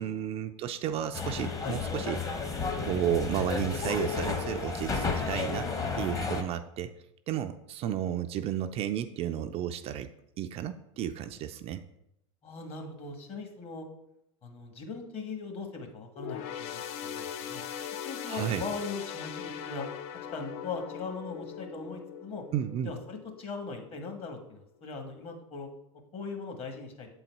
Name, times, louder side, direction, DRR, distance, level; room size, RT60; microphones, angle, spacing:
voice 1, 0.0-2.2 2.8-5.7 5.9-6.9 7.3-10.1 10.4-11.8 18.2-18.6 22.5-22.9, right 10 dB, 35° right, 8 dB, 0.4 m, -32 dB
sound 1, 1.1-6.4, left 4 dB, 20° left, 1.0 m, -32 dB
voice 2, 12.4-13.9 14.4-17.6 18.0-19.9 20.3-22.4 22.8-25.7 26.1-27.1, left 4 dB, 35° left, 3 dB, 1.4 m, -39 dB
sound 2, 16.2-23.8 24.3-24.4 25.3-25.4, left 8 dB, 55° left, 0.5 m, -40 dB
7.6 x 4.0 x 4.5 m, 0.80 s
hypercardioid pair, 95°, 16 cm